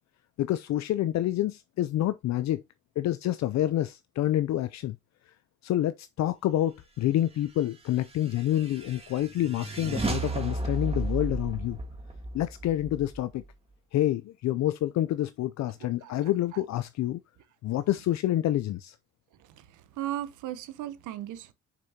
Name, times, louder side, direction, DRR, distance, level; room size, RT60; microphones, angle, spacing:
voice 1, 0.4-2.6 3.0-5.0 5.6-11.8 12.3-13.4 13.9-17.2 17.6-19.0, left 13 dB, 65° left, 0.5 m, -28 dB
sound 1, 7.9-13.5, right 2 dB, 20° right, 1.6 m, -34 dB
voice 2, 20.0-21.5, right 13 dB, 85° right, 0.9 m, -36 dB
6.7 x 5.6 x 2.8 m
cardioid pair, 90°, 30 cm